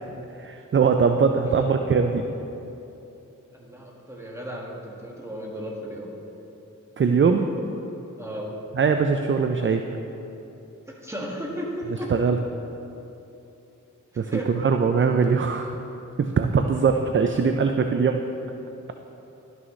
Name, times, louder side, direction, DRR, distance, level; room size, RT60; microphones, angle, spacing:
voice 1, 0.4-2.2 7.0-7.5 8.7-9.9 12.1-12.4 14.2-15.7 16.2-18.2, right 5 dB, 40° right, 6 dB, 0.4 m, -21 dB
voice 2, 3.5-6.1 8.2-8.5 10.9-12.1 14.1-14.5, equal, 10° right, -3 dB, 1.7 m, -35 dB
12.0 x 6.2 x 3.2 m, 3.0 s
cardioid pair, 45°, 32 cm